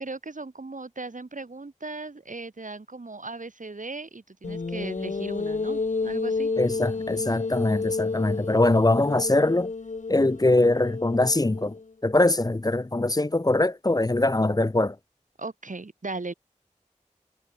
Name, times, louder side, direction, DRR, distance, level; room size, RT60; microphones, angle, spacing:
voice 1, 0.0-6.5 15.4-16.3, right 3 dB, 90° right, 2.5 m, -37 dB
sound 1, 4.4-11.8, left 4 dB, 70° left, 0.8 m, -30 dB
voice 2, 6.6-9.7 10.1-11.8 12.0-15.0, left 2 dB, 30° left, 0.6 m, -22 dB
wide cardioid pair, 45°, 13 cm